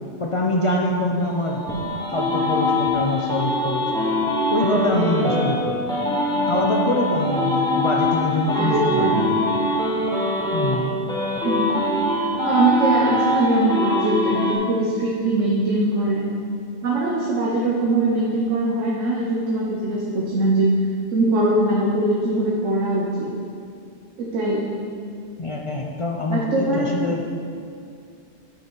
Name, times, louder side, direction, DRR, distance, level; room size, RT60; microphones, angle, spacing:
voice 1, 0.2-1.6 2.1-3.8 4.5-5.8 6.5-9.4 10.5-10.9 12.2-12.3 25.4-27.2, left 1 dB, 35° left, -1 dB, 0.5 m, -24 dB
sound 1, 1.2-5.5 5.9-10.8 11.1-14.5, left 1 dB, 5° left, 1.1 m, -23 dB
voice 2, 8.5-9.3 11.4-11.8 12.4-16.3 16.8-20.7 21.1-23.3 24.2-24.7 26.3-26.9, right 2 dB, 85° right, -3 dB, 1.2 m, -22 dB
8.3 x 5.6 x 4.6 m, 2.3 s
omnidirectional pair, 1.3 m